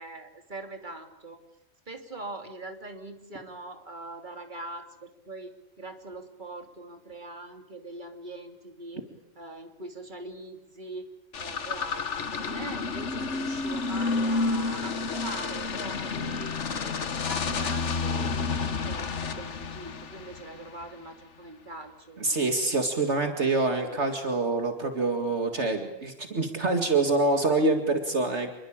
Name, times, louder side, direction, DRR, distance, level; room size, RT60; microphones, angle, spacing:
voice 1, 0.0-1.4 1.9-5.5 5.8-9.0 9.3-11.1 11.4-22.2, right 2 dB, 40° right, 6 dB, 3.1 m, -42 dB
sound 1, 11.3-20.9, left 4 dB, 70° left, 1.7 m, -30 dB
voice 2, 22.2-28.5, right 3 dB, 65° right, 5 dB, 2.4 m, -26 dB
27.5 x 22.0 x 8.8 m, 0.84 s
omnidirectional pair, 1.3 m